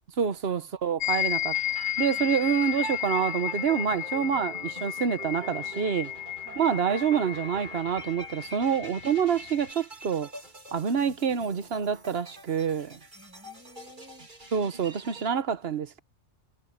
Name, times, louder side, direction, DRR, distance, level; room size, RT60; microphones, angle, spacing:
voice 1, 0.2-1.6 2.0-6.1 6.5-10.3 10.7-13.0 14.5-16.0, right 7 dB, 55° right, 1.2 m, -27 dB
sound 1, 1.0-9.7, left 14 dB, 80° left, 1.4 m, -33 dB
sound 2, 1.5-15.3, right 3 dB, 40° right, 2.9 m, -45 dB
voice 2, 13.1-14.3 15.1-15.2, equal, 10° right, 7.7 m, -55 dB
omnidirectional pair, 1.3 m